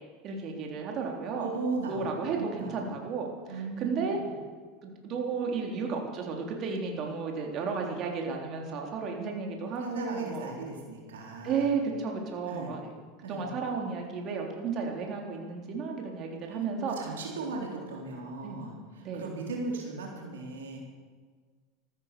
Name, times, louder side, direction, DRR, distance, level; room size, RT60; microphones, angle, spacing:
voice 1, 0.2-1.5 1.9-4.2 4.8-10.5 11.4-12.9 13.2-16.9 18.4-18.7 19.0-19.3, right 5 dB, 45° right, 1 dB, 3.6 m, -33 dB
voice 2, 1.4-2.8 3.5-4.2 9.8-11.7 12.4-12.7 13.2-13.4 16.5-20.8, right 3 dB, 90° right, -1 dB, 3.7 m, -37 dB
14.5 x 14.0 x 6.9 m, 1.5 s
hypercardioid pair, 100°, 0 cm